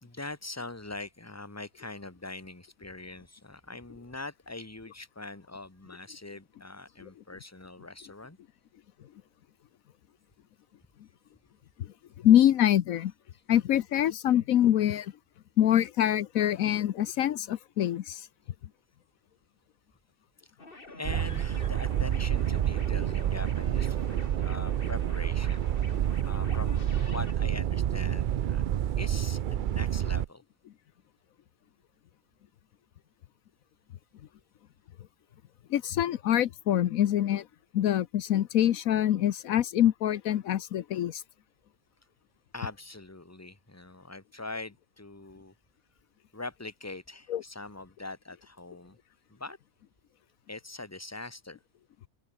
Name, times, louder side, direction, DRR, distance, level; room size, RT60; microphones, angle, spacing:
voice 1, 0.0-8.4 20.4-25.7 26.2-28.6 29.0-30.4 42.5-45.5 46.3-49.0 49.3-49.6 50.5-51.6, left 2 dB, 10° left, 1.8 m, -42 dB
voice 2, 11.8-13.1 13.5-15.1 15.6-18.3 35.7-37.5 37.7-41.2 47.3-47.4, left 11 dB, 80° left, 1.2 m, -25 dB
sound 1, 20.6-27.3, left 2 dB, 40° left, 3.6 m, -48 dB
sound 2, 21.0-30.3, right 10 dB, 70° right, 0.4 m, -28 dB
open air
omnidirectional pair, 1.4 m